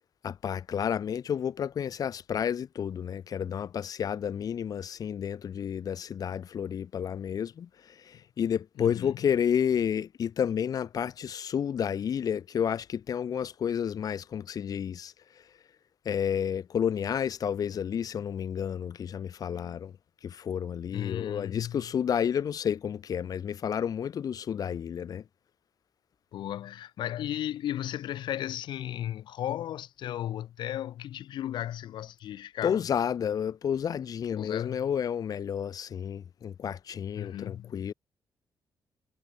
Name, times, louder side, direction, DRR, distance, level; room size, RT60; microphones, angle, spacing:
voice 1, 0.2-15.1 16.0-19.9 20.2-25.2 32.6-37.9, left 8 dB, 55° left, 1.2 m, -31 dB
voice 2, 8.8-9.2 20.9-21.9 26.3-32.8 34.4-34.9 37.1-37.8, left 12 dB, 80° left, 1.4 m, -35 dB
cardioid pair, 125°, 8 cm